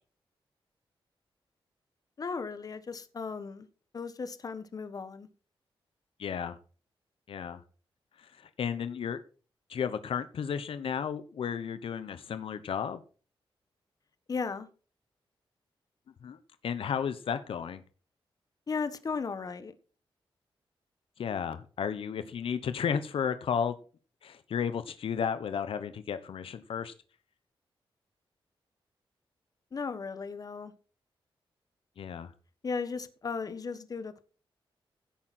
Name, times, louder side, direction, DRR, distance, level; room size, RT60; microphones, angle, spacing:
voice 1, 2.2-3.7 3.9-5.3 14.3-14.7 18.7-19.7 29.7-30.7 32.6-34.2, left 5 dB, 40° left, 11 dB, 1.5 m, -36 dB
voice 2, 6.2-6.6 7.3-7.6 8.2-9.2 9.7-13.0 16.2-16.4 16.6-17.8 21.2-23.7 24.2-26.9 32.0-32.3, left 7 dB, 75° left, 11 dB, 1.1 m, -33 dB
16.5 x 8.8 x 4.4 m, 0.37 s
wide cardioid pair, 150°, 9 cm